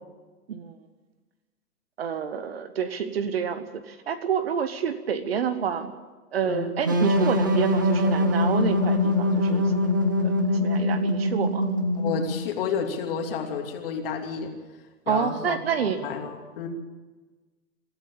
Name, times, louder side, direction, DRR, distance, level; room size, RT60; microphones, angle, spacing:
voice 1, 2.0-5.9 6.3-9.9 10.2-11.7 15.1-16.0, right 7 dB, 40° right, 11 dB, 1.2 m, -28 dB
sound 1, 6.8-12.5, left 1 dB, 15° right, 0.5 m, -23 dB
voice 2, 12.0-14.5 15.1-16.7, left 6 dB, 35° left, 3 dB, 2.8 m, -31 dB
23.5 x 13.5 x 8.6 m, 1.3 s
hypercardioid pair, 160°, 48 cm